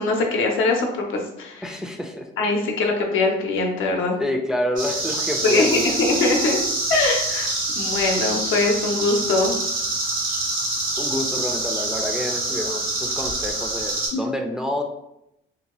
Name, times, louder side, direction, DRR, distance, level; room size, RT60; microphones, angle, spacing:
voice 1, 0.0-1.6 2.4-4.2 5.4-6.6 6.9-7.5 7.8-9.6 14.1-14.2, left 3 dB, 85° left, 1 dB, 0.6 m, -22 dB
voice 2, 1.6-2.3 4.2-6.1 11.0-14.8, left 1 dB, 5° right, 3 dB, 0.3 m, -28 dB
sound 1, 4.8-14.1, right 2 dB, 75° right, 1.4 m, -26 dB
2.7 x 2.2 x 3.0 m, 0.82 s
cardioid pair, 90°, 20 cm